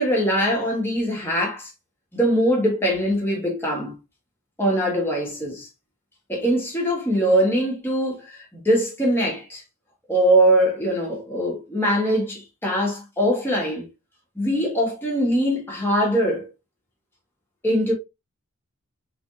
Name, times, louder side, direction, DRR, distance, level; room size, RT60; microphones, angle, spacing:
voice 1, 0.0-1.7 2.1-4.0 4.6-5.7 6.3-9.6 10.1-13.8 14.3-16.5 17.6-17.9, equal, 10° left, 1.5 m, -22 dB
3.5 x 3.4 x 2.6 m
head